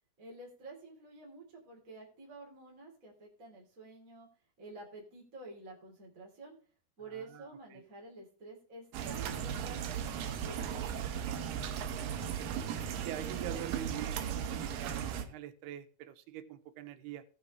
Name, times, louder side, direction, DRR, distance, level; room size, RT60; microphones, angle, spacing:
voice 1, 0.2-4.3 4.6-6.5 7.0-11.5, right 3 dB, 25° right, 2.9 m, -50 dB
voice 2, 7.1-7.9 12.0-12.6 13.0-17.2, right 12 dB, 90° right, 2.9 m, -45 dB
sound 1, 8.9-15.3, right 8 dB, 70° right, 2.6 m, -37 dB
19.0 x 6.4 x 3.1 m
omnidirectional pair, 4.5 m